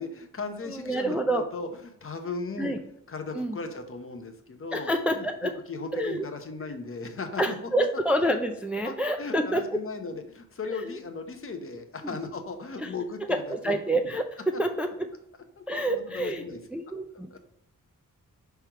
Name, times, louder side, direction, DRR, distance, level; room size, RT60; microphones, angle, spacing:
voice 1, 0.0-2.8 3.1-7.9 8.8-13.7 14.5-14.6 15.6-16.6 17.3-17.4, left 4 dB, 40° left, 6 dB, 0.9 m, -37 dB
voice 2, 0.6-1.4 2.6-2.8 3.3-3.6 4.7-5.5 5.9-6.3 7.4-9.6 10.7-11.0 12.8-12.9 13.3-15.1 15.7-16.4 16.7-17.4, right 1 dB, 5° right, 4 dB, 0.4 m, -28 dB
6.0 x 3.4 x 4.5 m, 0.77 s
wide cardioid pair, 120°, 33 cm